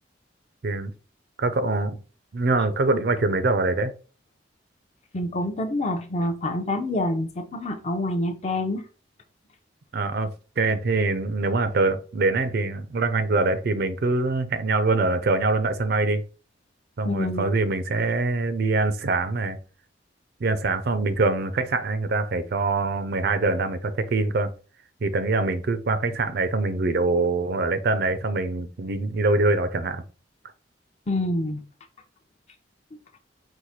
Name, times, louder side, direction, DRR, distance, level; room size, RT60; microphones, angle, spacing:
voice 1, 1.4-2.0 2.3-3.9 9.9-10.3 10.6-16.2 17.0-19.6 20.4-24.5 25.0-30.0, right 3 dB, 55° right, 0.5 m, -24 dB
voice 2, 5.1-8.8 17.0-17.5 31.1-31.6, left 1 dB, 35° left, 0.6 m, -27 dB
4.7 x 2.1 x 4.1 m
head